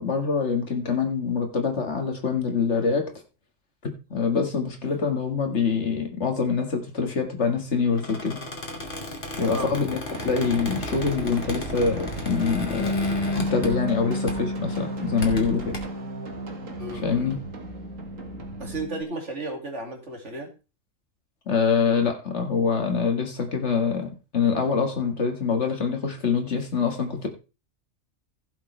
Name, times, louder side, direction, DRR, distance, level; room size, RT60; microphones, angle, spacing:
voice 1, 0.0-3.1 3.8-8.4 9.4-13.0 13.4-15.7 17.0-17.4 21.5-27.3, left 5 dB, 60° left, 4 dB, 2.1 m, -25 dB
Squeak, 7.9-14.0 14.3-14.5 15.0-15.8, left 1 dB, 40° left, 2.4 m, -34 dB
voice 2, 9.4-9.7 16.8-17.4 18.6-20.5, right 2 dB, 65° right, 2 dB, 2.7 m, -34 dB
sound 1, 10.1-18.9, right 5 dB, 80° right, 2.1 m, -39 dB
Bass guitar, 12.8-19.0, left 2 dB, 25° left, 0.9 m, -32 dB
15.5 x 7.4 x 3.3 m, 0.31 s
omnidirectional pair, 1.3 m